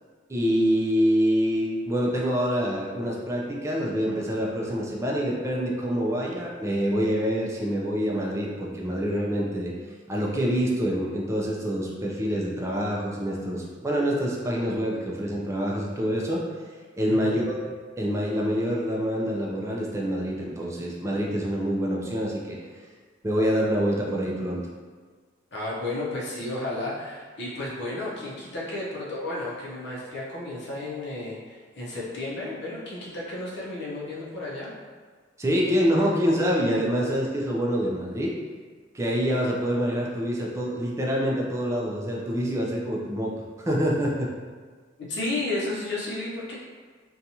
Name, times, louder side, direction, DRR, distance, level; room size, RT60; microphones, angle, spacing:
voice 1, 0.3-9.7 10.1-16.4 17.0-17.5 18.0-22.6 23.2-24.6 35.4-38.3 38.9-43.3 43.6-44.3, equal, 15° right, -3 dB, 0.3 m, -26 dB
voice 2, 17.1-17.4 25.5-34.7 45.1-46.6, left 2 dB, 60° left, -6 dB, 0.6 m, -32 dB
2.6 x 2.3 x 2.8 m, 1.5 s
head